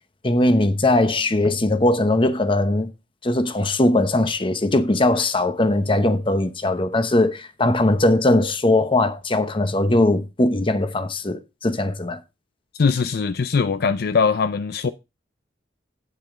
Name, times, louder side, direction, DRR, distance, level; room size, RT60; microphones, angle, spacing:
voice 1, 0.2-2.9 3.2-12.2, left 2 dB, 30° left, 0.9 m, -20 dB
voice 2, 12.8-14.9, left 5 dB, 60° left, 0.5 m, -21 dB
9.0 x 8.3 x 3.7 m
head